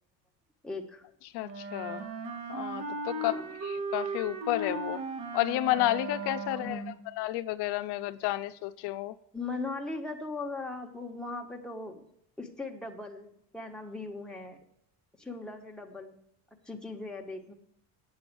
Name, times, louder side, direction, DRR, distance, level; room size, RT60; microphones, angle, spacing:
voice 1, 0.6-1.0 3.1-3.5 6.5-7.0 9.3-12.0 12.4-14.6 15.2-16.2 16.6-17.5, left 3 dB, ahead, 1.4 m, -39 dB
voice 2, 1.3-2.0 2.5-5.0 5.3-6.8 7.2-9.1, left 16 dB, 75° left, 0.6 m, -31 dB
Wind instrument woodwind instrument, 1.4-6.9, right 2 dB, 65° right, 2.8 m, -37 dB
9.0 x 7.8 x 6.1 m
cardioid pair, 135°, 40 cm